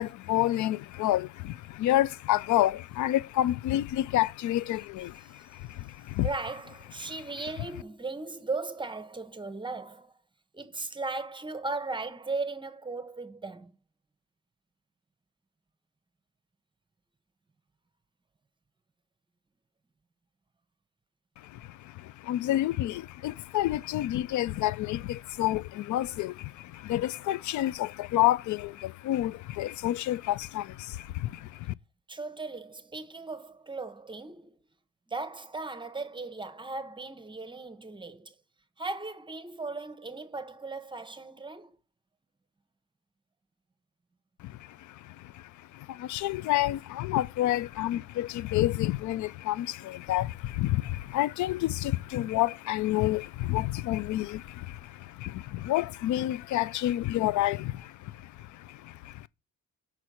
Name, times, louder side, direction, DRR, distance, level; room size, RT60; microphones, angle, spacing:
voice 1, 0.0-6.3 7.0-7.1 21.4-31.7 44.4-59.3, left 14 dB, 75° left, 0.5 m, -29 dB
voice 2, 5.2-10.1 10.5-13.7 32.1-34.6 35.1-38.3 38.8-41.8, right 3 dB, 15° right, 0.8 m, -37 dB
5.9 x 4.4 x 6.2 m
cardioid pair, 90°, 30 cm